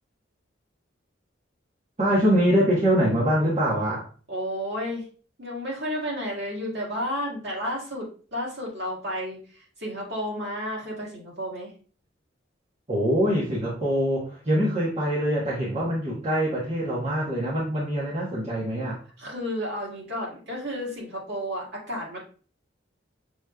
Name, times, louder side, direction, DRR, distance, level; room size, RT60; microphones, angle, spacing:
voice 1, 2.0-4.0 12.9-19.0, equal, 35° right, -6 dB, 1.1 m, -24 dB
voice 2, 4.3-5.1 5.4-11.7 19.2-22.2, equal, 60° right, -4 dB, 1.9 m, -32 dB
6.3 x 3.1 x 2.3 m, 0.40 s
head